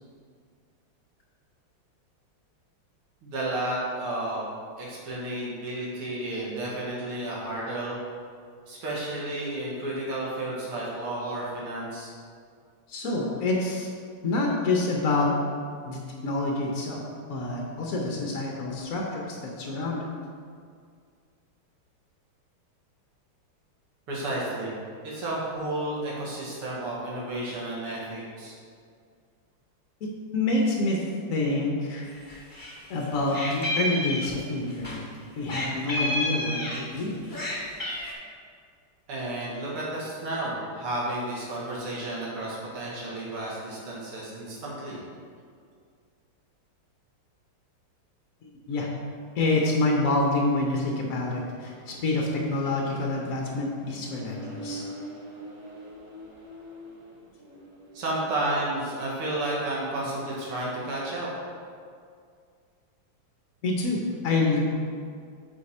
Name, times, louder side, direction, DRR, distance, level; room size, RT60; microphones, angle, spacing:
voice 1, 3.2-4.4 4.8-8.0 8.7-12.1 24.1-24.7 25.0-28.5 39.1-45.0 57.9-61.3, right 1 dB, 85° right, -5 dB, 2.3 m, -32 dB
voice 2, 12.9-13.9 14.2-15.3 15.9-17.0 17.3-20.1 30.0-31.0 31.3-32.1 32.9-35.0 35.4-37.4 48.4-48.9 49.3-54.9 63.6-64.6, left 2 dB, 65° left, -1 dB, 0.8 m, -27 dB
Meow, 32.1-32.8 33.0-35.0 35.5-37.0 37.3-38.1, left 1 dB, 20° left, 0.6 m, -30 dB
Accelerating revving vroom, 49.3-59.6, right 1 dB, 40° right, 1.4 m, -45 dB
8.4 x 4.2 x 4.2 m, 2.2 s
omnidirectional pair, 2.4 m